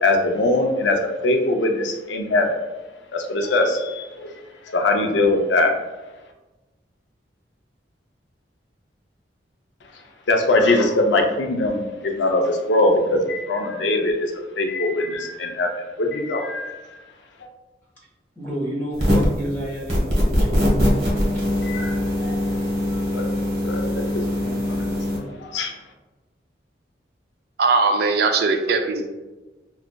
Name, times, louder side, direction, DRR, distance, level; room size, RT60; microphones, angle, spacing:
voice 1, 0.0-2.5 3.1-4.3 4.7-5.7 10.3-14.3 14.6-15.7 16.0-17.0 21.6-22.4 23.1-23.3 23.6-25.0 25.4-25.7, left 2 dB, 90° left, 3 dB, 0.5 m, -22 dB
voice 2, 18.3-20.9, right 1 dB, 10° left, -6 dB, 1.2 m, -30 dB
sound 1, 18.9-19.4 19.9-25.2, equal, 35° right, 1.4 m, -22 dB
voice 3, 27.6-29.1, right 4 dB, 60° right, 5 dB, 0.4 m, -20 dB
5.9 x 2.4 x 2.2 m, 1.1 s
head